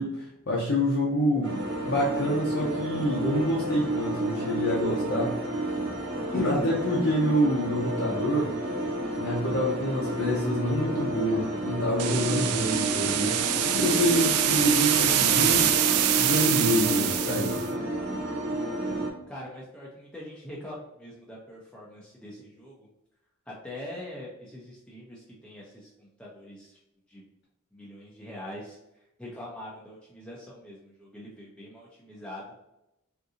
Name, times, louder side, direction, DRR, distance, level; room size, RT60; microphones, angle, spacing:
voice 1, 0.0-5.4 6.3-8.6 9.2-15.7 16.2-17.6, equal, 55° left, -4 dB, 0.6 m, -27 dB
sound 1, 1.4-19.1, right 1 dB, 60° right, 0.8 m, -31 dB
sound 2, 12.0-17.7, right 10 dB, 85° right, 0.3 m, -25 dB
voice 2, 19.3-22.9 23.5-26.8 27.1-27.2 27.7-28.8 29.2-32.6, left 1 dB, 5° left, -5 dB, 0.5 m, -43 dB
3.7 x 2.6 x 2.6 m, 0.88 s
head